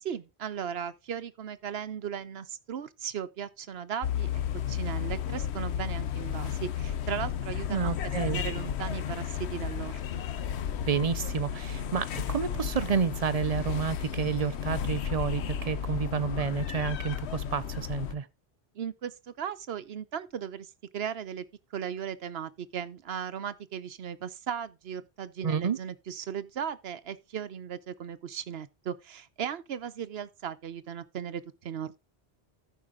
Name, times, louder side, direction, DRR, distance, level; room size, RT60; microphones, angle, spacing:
voice 1, 0.0-4.4 4.7-8.0 8.2-10.2 18.7-21.4 21.7-32.0, right 8 dB, 70° right, 1.0 m, -37 dB
sound 1, 4.0-18.2, left 9 dB, 85° left, 1.0 m, -33 dB
voice 2, 7.7-8.4 10.8-18.3 25.4-25.8, right 6 dB, 45° right, 0.6 m, -30 dB
13.5 x 5.7 x 3.6 m
omnidirectional pair, 1.1 m